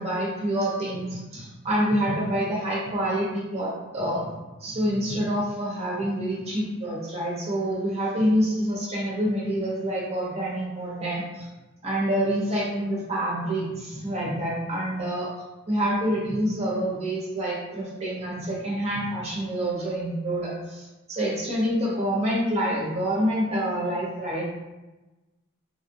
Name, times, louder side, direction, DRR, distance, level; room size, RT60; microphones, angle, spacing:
voice 1, 0.0-11.5 11.8-15.3 15.7-24.5, equal, 30° right, -5 dB, 1.0 m, -27 dB
3.4 x 2.4 x 2.7 m, 1.1 s
head